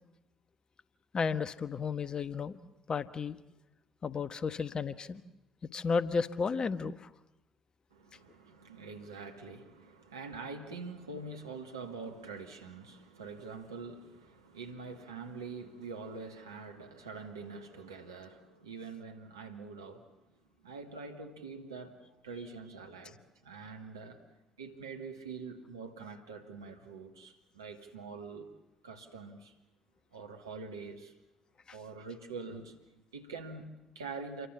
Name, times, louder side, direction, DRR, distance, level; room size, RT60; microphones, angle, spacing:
voice 1, 1.1-3.4 4.0-5.2 5.7-7.1, left 5 dB, 40° left, 1.3 m, -33 dB
voice 2, 7.9-20.2 20.6-24.2 24.6-28.5 28.8-29.5 30.1-31.1 31.7-34.5, right 4 dB, 85° right, 2.2 m, -45 dB
28.5 x 23.0 x 7.1 m
figure-of-eight pair, 45°, 2 cm